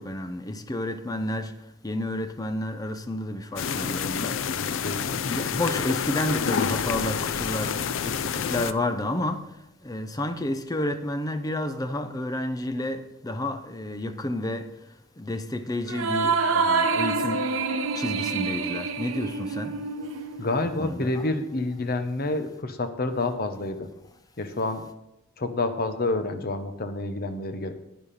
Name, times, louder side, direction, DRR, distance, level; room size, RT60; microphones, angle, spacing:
voice 1, 0.0-1.5 1.8-4.4 5.0-9.5 9.8-14.7 15.2-17.5 18.0-19.8 20.8-21.1, left 1 dB, 20° left, 0.7 m, -30 dB
sound 1, 3.6-8.7, left 7 dB, 70° left, 0.4 m, -28 dB
voice 2, 4.4-5.0 20.4-23.9 24.4-24.8 25.4-27.7, left 2 dB, 50° left, 1.0 m, -28 dB
sound 2, 15.9-20.6, right 4 dB, 85° right, 0.8 m, -27 dB
10.5 x 9.3 x 4.3 m
head